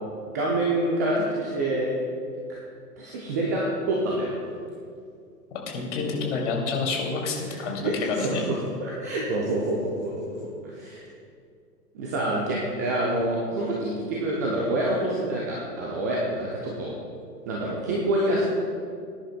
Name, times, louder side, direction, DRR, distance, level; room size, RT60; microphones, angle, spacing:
voice 1, 0.3-1.9 2.5-2.6 3.0-4.3 7.5-10.4 10.6-11.1 11.9-16.9 17.5-18.4, right 1 dB, 10° right, -4 dB, 0.4 m, -27 dB
voice 2, 5.7-8.4, left 4 dB, 45° left, 0 dB, 2.6 m, -28 dB
19.5 x 10.5 x 2.2 m, 2.3 s
figure-of-eight pair, 115°, 48 cm